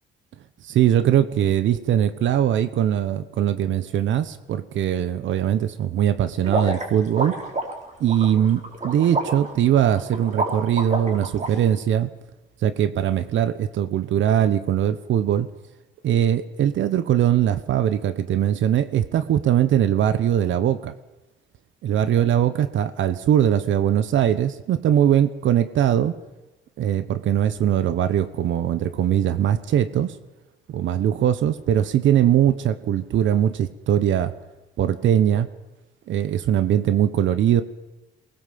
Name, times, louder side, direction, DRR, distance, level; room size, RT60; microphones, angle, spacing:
voice 1, 0.7-7.3 8.0-12.1 12.6-15.5 16.0-20.9 21.8-26.1 26.8-30.1 30.7-34.3 34.8-35.5 36.1-37.6, right 10 dB, 75° right, 13 dB, 1.1 m, -21 dB
sound 1, 6.4-11.5, right 2 dB, 35° right, 4.9 m, -28 dB
23.0 x 19.5 x 7.7 m, 1.0 s
cardioid pair, 90°, 20 cm